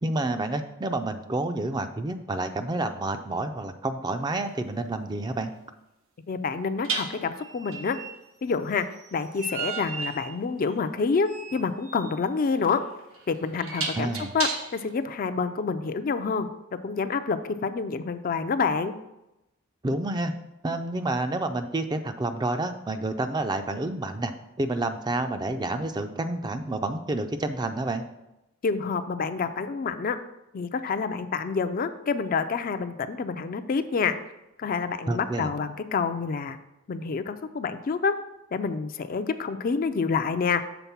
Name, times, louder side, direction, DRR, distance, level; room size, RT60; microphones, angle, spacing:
voice 1, 0.0-5.5 14.0-14.3 19.8-20.3 20.6-24.3 24.6-28.0 35.1-35.5, right 2 dB, 20° right, 8 dB, 0.4 m, -29 dB
sound 1, 4.4-4.6 6.8-14.9, right 5 dB, 90° right, 1.1 m, -35 dB
voice 2, 6.3-8.0 8.4-8.9 9.1-12.8 13.3-16.5 16.8-18.9 28.6-30.2 30.5-34.2 34.6-36.6 36.9-38.1 38.5-40.6, left 5 dB, 45° left, 9 dB, 0.4 m, -28 dB
6.9 x 3.9 x 5.8 m, 0.92 s
head